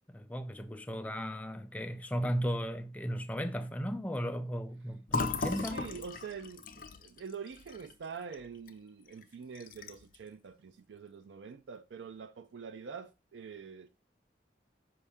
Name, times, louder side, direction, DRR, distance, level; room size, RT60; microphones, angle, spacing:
voice 1, 0.1-5.8, equal, 10° left, 0.4 m, -35 dB
Fill (with liquid), 5.1-8.7 9.1-9.2 9.5-10.2, left 3 dB, 50° left, 0.6 m, -37 dB
voice 2, 5.3-13.9, right 6 dB, 90° right, 0.4 m, -45 dB
5.5 x 5.5 x 3.5 m
head